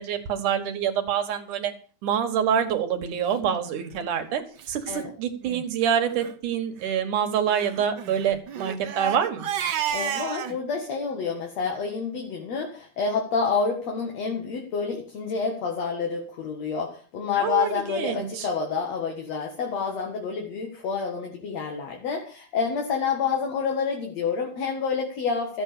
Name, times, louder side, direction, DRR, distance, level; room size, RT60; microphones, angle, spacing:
voice 1, 0.0-1.7 2.0-4.4 4.7-9.4 17.4-18.5, right 8 dB, 85° right, 6 dB, 3.2 m, -26 dB
Crying sobbing, 3.7-3.9 4.6-4.7 5.0-5.1 5.4-5.6 6.1-6.3 7.5-10.6, right 9 dB, 70° right, 1.0 m, -31 dB
voice 2, 9.9-25.6, left 5 dB, 60° left, 1 dB, 2.9 m, -28 dB
13.5 x 8.4 x 6.8 m, 0.39 s
omnidirectional pair, 3.5 m